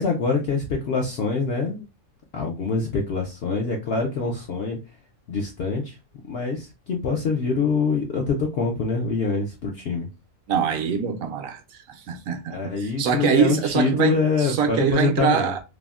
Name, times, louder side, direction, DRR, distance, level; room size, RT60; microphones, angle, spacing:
voice 1, 0.0-1.9 2.3-4.8 5.3-5.9 6.3-10.1 12.5-15.5, left 4 dB, 65° left, 0.6 m, -25 dB
voice 2, 10.5-15.6, right 7 dB, 70° right, 0.9 m, -24 dB
3.3 x 2.1 x 2.3 m
omnidirectional pair, 1.5 m